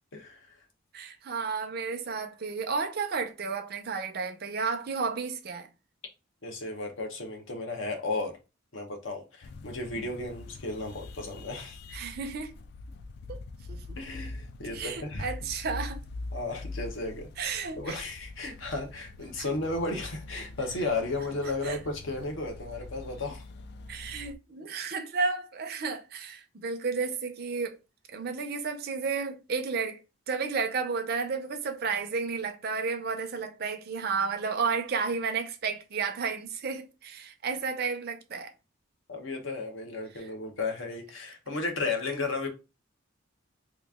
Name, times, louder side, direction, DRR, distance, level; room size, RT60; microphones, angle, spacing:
voice 1, 0.9-5.7 10.0-10.1 11.9-12.5 13.3-13.4 13.7-14.0 14.7-16.0 17.4-18.0 19.4-19.5 21.6-21.8 23.9-27.8 28.1-30.0 30.3-38.5 40.2-40.3, right 5 dB, 50° right, 0.5 m, -32 dB
voice 2, 6.4-8.4 8.7-11.8 14.0-15.3 16.3-23.4 39.1-42.5, left 3 dB, 75° left, 0.9 m, -34 dB
sound 1, 9.4-24.4, left 2 dB, 55° left, 0.3 m, -43 dB
3.0 x 2.5 x 3.4 m
head